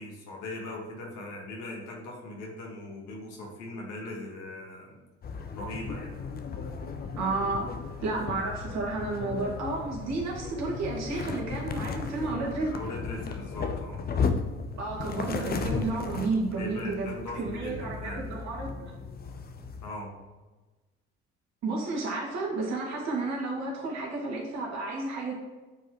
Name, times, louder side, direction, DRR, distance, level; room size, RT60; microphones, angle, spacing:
voice 1, 0.0-5.0 5.5-6.1 12.7-14.1 16.6-18.3 19.8-20.1, left 1 dB, 55° left, 0 dB, 1.7 m, -39 dB
sound 1, 5.2-19.9, left 5 dB, 25° left, 0.6 m, -35 dB
voice 2, 7.2-7.7 8.0-12.7 14.8-18.9 21.6-25.3, right 3 dB, 50° right, -3 dB, 2.1 m, -32 dB
9.4 x 4.6 x 3.1 m, 1.2 s
figure-of-eight pair, 50°, 35 cm